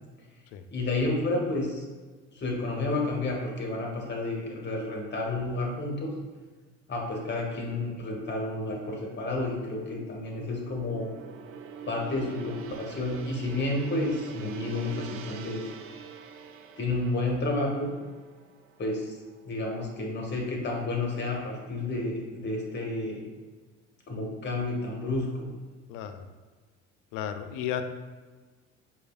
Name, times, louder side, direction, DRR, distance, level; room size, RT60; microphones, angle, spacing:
voice 1, 0.7-1.9 2.3-6.1 6.9-11.1 11.9-15.7 16.8-17.9 18.8-19.2 19.4-23.2 24.1-25.5, left 2 dB, 30° left, 0 dB, 1.1 m, -30 dB
Gong, 8.4-20.4 20.8-21.0, right 7 dB, 40° right, 0.4 m, -46 dB
voice 2, 25.9-26.2 27.1-27.8, left 10 dB, 55° left, 9 dB, 0.4 m, -33 dB
4.6 x 2.8 x 2.3 m, 1.4 s
hypercardioid pair, 60°, 38 cm